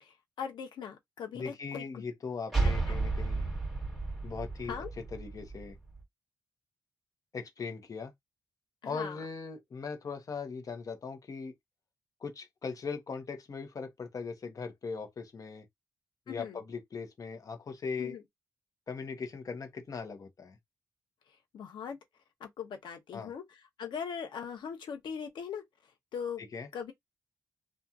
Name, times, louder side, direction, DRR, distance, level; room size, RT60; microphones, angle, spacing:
voice 1, 0.0-1.8 2.9-3.0 4.7-4.9 8.8-9.2 16.3-16.6 18.0-18.2 21.5-22.0 22.4-23.4 23.8-25.6 26.1-26.4 26.7-26.9, left 7 dB, 90° left, 0.9 m, -40 dB
voice 2, 1.3-3.5 4.2-4.8 5.1-5.8 7.3-8.1 8.8-11.5 12.2-15.6 16.3-18.2 18.9-20.6 23.1-23.3 26.4-26.7, left 5 dB, 50° left, 0.9 m, -39 dB
sound 1, 2.5-6.0, right 3 dB, 5° right, 1.6 m, -32 dB
2.8 x 2.4 x 2.4 m
cardioid pair, 100°, 8 cm